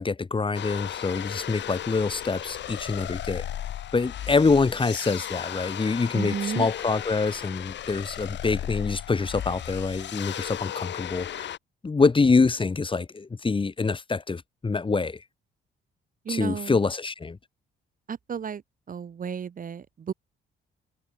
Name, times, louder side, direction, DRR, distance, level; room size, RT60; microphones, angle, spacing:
voice 1, 0.0-3.5 3.9-11.5 11.8-15.2 16.3-17.4, left 4 dB, 25° left, 1.6 m, -25 dB
sound 1, 0.5-11.6, left 11 dB, 65° left, 1.3 m, -35 dB
voice 2, 6.1-6.7 16.2-16.8 18.1-18.6 18.9-20.1, right 7 dB, 45° right, 1.3 m, -33 dB
cardioid pair, 90°, 20 cm